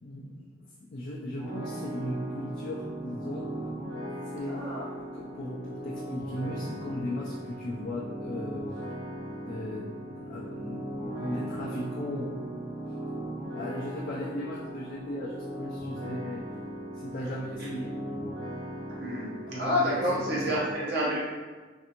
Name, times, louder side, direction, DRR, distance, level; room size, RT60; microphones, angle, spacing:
voice 1, 0.0-3.5 4.1-4.8 5.1-8.6 9.2-9.9 10.2-10.9 11.2-12.7 13.5-16.4 16.9-17.9 19.5-20.5, left 1 dB, 45° left, -5 dB, 0.4 m, -37 dB
sound 1, 1.4-20.6, right 1 dB, 20° right, 0.6 m, -38 dB
voice 2, 4.5-4.8 17.6-17.7 19.0-21.2, equal, 55° right, -6 dB, 0.9 m, -29 dB
3.2 x 2.6 x 2.8 m, 1.3 s
head